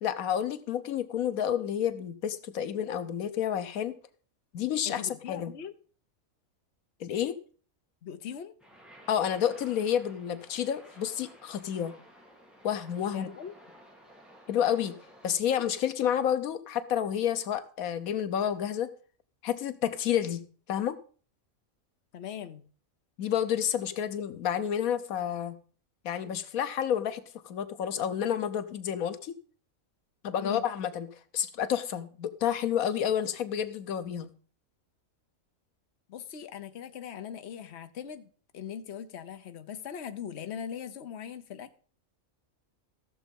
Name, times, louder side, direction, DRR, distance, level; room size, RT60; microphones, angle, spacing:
voice 1, 0.0-3.9 4.5-5.5 7.0-7.4 9.1-11.9 12.6-13.3 14.5-14.9 15.2-18.9 19.4-20.4 20.7-21.0 23.2-25.5 26.0-29.3 30.2-31.1 31.3-34.3, left 9 dB, 85° left, 1.3 m, -30 dB
voice 2, 4.8-5.7 8.0-8.5 13.1-13.5 22.1-22.6 30.4-30.6 36.1-41.8, left 8 dB, 55° left, 1.2 m, -40 dB
sound 1, 8.6-15.3, equal, ahead, 2.9 m, -54 dB
14.5 x 7.1 x 5.3 m
omnidirectional pair, 1.4 m